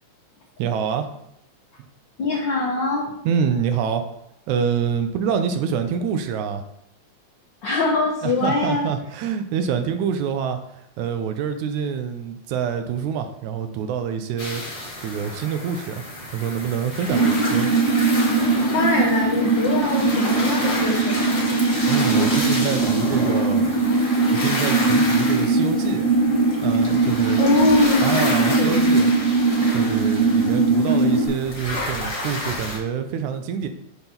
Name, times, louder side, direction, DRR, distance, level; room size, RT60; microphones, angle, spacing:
voice 1, 0.6-1.1 3.2-4.1 4.5-6.6 8.2-14.6 15.0-16.0 16.3-17.7 21.9-23.7 24.3-26.1 26.6-27.4 28.0-29.1 29.7-33.7, right 7 dB, 80° right, 7 dB, 2.0 m, -26 dB
voice 2, 2.2-3.1 7.6-8.9 18.7-21.4 27.4-28.8, left 3 dB, 90° left, -2 dB, 1.0 m, -23 dB
sound 1, 14.4-32.8, left 1 dB, 55° left, 0.3 m, -30 dB
sound 2, 17.1-31.3, right 3 dB, 55° right, 2.2 m, -20 dB
6.1 x 3.5 x 5.7 m, 0.78 s
omnidirectional pair, 3.4 m